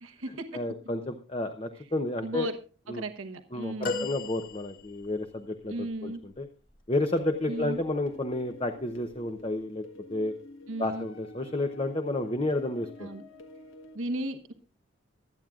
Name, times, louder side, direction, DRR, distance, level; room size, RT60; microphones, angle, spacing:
voice 1, 0.0-0.6 2.2-2.6 2.9-4.1 5.7-6.2 7.5-7.8 10.7-11.1 13.0-13.2 13.9-14.5, right 1 dB, 90° right, 8 dB, 1.2 m, -35 dB
voice 2, 0.5-2.5 2.9-3.0 3.5-6.5 6.9-9.8 10.1-10.3 10.8-13.1, left 2 dB, 30° left, 6 dB, 0.7 m, -31 dB
sound 1, 3.8-5.2 7.6-7.8 9.1-9.2, left 4 dB, 45° left, 2.1 m, -35 dB
sound 2, 7.2-14.0, left 1 dB, 80° left, 1.6 m, -48 dB
24.0 x 9.0 x 2.4 m, 0.37 s
head